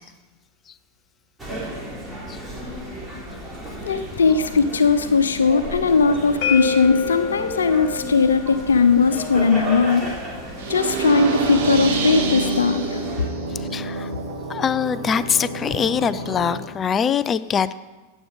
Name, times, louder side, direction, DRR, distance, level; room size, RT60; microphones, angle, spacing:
sound 1, 1.4-13.3, equal, 10° right, 3.6 m, -34 dB
voice 1, 3.8-10.0 10.7-13.0, left 5 dB, 75° left, 9 dB, 0.9 m, -19 dB
sound 2, 6.4-12.2, left 6 dB, 50° left, 1.5 m, -31 dB
sound 3, 10.6-16.6, right 3 dB, 50° right, 2.6 m, -27 dB
voice 2, 13.5-14.1 14.5-17.7, left 7 dB, 25° left, 16 dB, 0.5 m, -23 dB
16.5 x 8.6 x 5.5 m, 1.2 s
figure-of-eight pair, 95°, 0 cm